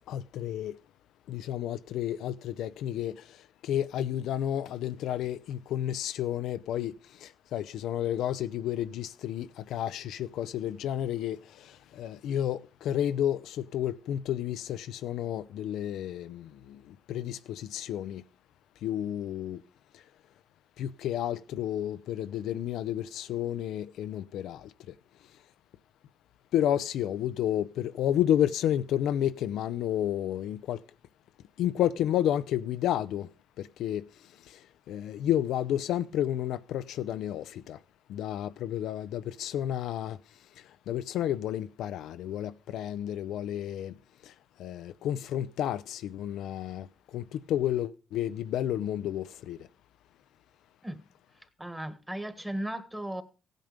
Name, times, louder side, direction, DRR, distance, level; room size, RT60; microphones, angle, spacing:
voice 1, 0.1-0.8 1.3-18.2 18.8-19.6 19.9-20.0 20.8-24.9 26.5-30.8 31.6-33.3 33.6-34.1 34.4-37.8 38.1-40.2 40.9-44.0 44.2-44.3 44.6-49.7, left 11 dB, 85° left, 0.5 m, -31 dB
voice 2, 51.6-53.2, right 1 dB, 10° right, 1.6 m, -36 dB
15.5 x 9.1 x 5.1 m
cardioid pair, 90°, 0 cm